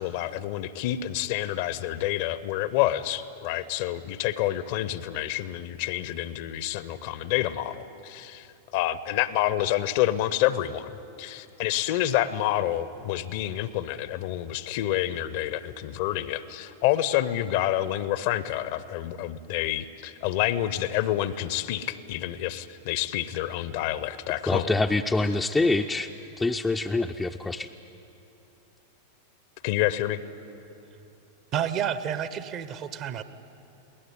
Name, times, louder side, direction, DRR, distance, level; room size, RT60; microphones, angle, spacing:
voice 1, 0.0-8.5 8.7-24.7 29.6-30.2, left 13 dB, 50° left, 16 dB, 0.8 m, -28 dB
voice 2, 24.5-26.1 26.4-27.7, left 2 dB, 10° left, 3 dB, 0.6 m, -25 dB
voice 3, 31.5-33.2, right 9 dB, 35° right, 13 dB, 1.0 m, -30 dB
21.5 x 18.0 x 9.8 m, 2.9 s
figure-of-eight pair, 90°, 0 cm